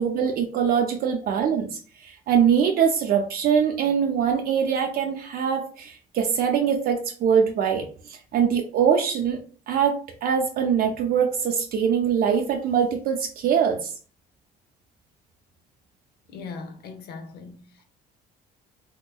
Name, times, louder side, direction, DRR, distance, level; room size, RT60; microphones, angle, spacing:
voice 1, 0.0-9.4 9.7-13.9, right 7 dB, 60° right, 0.5 m, -23 dB
voice 2, 16.3-17.8, left 4 dB, 70° left, 0.7 m, -40 dB
3.6 x 2.8 x 2.3 m
cardioid pair, 110°, 17 cm